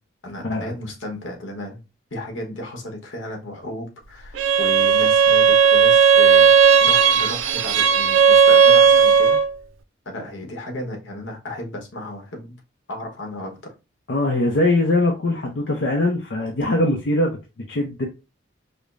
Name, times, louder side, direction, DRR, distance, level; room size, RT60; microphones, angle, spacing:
voice 1, 0.2-1.8 2.1-6.5 6.8-9.4 10.0-12.6 12.9-13.7, left 1 dB, 80° left, 1.1 m, -34 dB
Bowed string instrument, 4.4-9.5, right 6 dB, 90° right, 0.4 m, -14 dB
voice 2, 14.1-17.4 17.7-18.1, left 2 dB, 65° left, 0.6 m, -21 dB
5.0 x 2.1 x 2.5 m
head